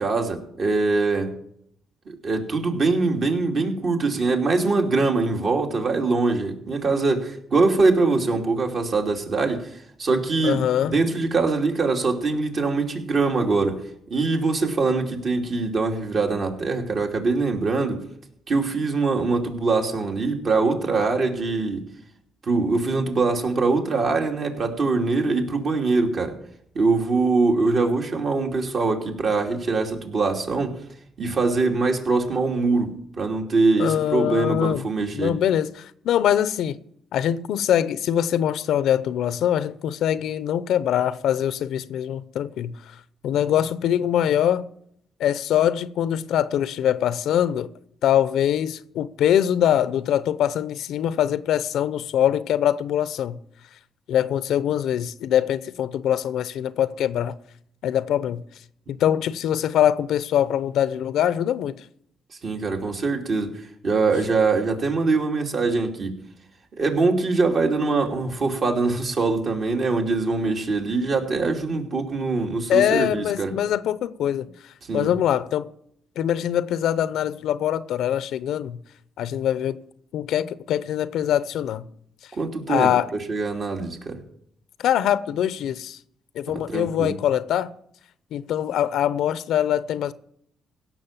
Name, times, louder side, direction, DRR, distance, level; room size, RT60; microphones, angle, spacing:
voice 1, 0.0-1.3 2.1-13.8 14.1-18.0 18.5-21.8 22.5-26.3 26.7-30.8 31.2-35.3 62.4-66.2 66.7-73.5 74.9-75.1 82.4-84.2 86.5-87.1, right 3 dB, 50° right, 2.8 m, -23 dB
voice 2, 10.4-10.9 33.8-34.9 35.1-36.8 37.1-42.8 43.2-44.6 45.2-47.7 48.0-53.4 54.1-57.4 57.8-58.4 58.9-61.8 72.7-75.7 76.2-78.8 79.2-79.8 80.1-81.9 82.7-83.1 84.8-86.0 86.3-87.7 88.3-90.1, left 10 dB, 80° left, 0.7 m, -23 dB
17.0 x 6.3 x 7.3 m
cardioid pair, 90°, 0 cm